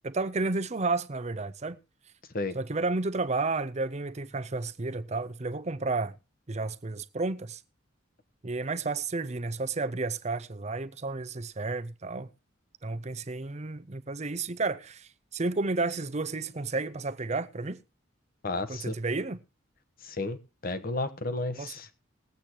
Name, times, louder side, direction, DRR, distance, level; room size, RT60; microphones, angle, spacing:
voice 1, 0.0-1.8 2.5-6.1 6.5-7.6 8.4-12.3 12.8-17.8 18.7-19.4 21.5-21.7, right 3 dB, 35° right, 0.7 m, -32 dB
voice 2, 18.4-18.9 20.0-20.4 20.6-21.9, left 2 dB, 50° left, 1.2 m, -32 dB
20.5 x 8.3 x 2.9 m
head